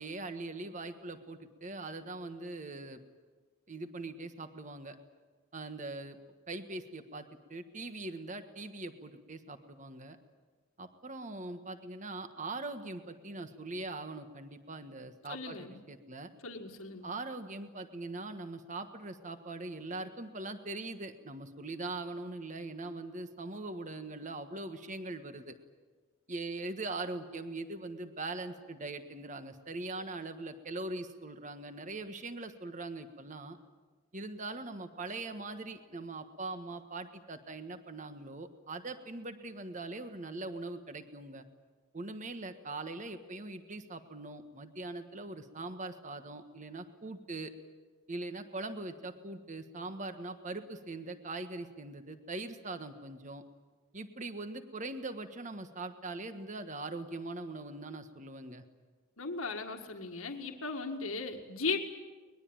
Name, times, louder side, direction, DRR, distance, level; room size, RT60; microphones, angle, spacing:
voice 1, 0.0-3.0 3.7-5.0 5.5-6.2 6.5-10.2 10.8-16.3 17.0-25.6 26.3-33.6 34.1-41.4 41.9-47.5 48.1-53.4 53.9-58.6, right 2 dB, 35° right, 8 dB, 1.5 m, -41 dB
voice 2, 15.3-15.8 16.4-17.1 59.2-61.8, left 4 dB, 80° left, 4 dB, 1.9 m, -37 dB
23.5 x 21.0 x 8.9 m, 1.4 s
head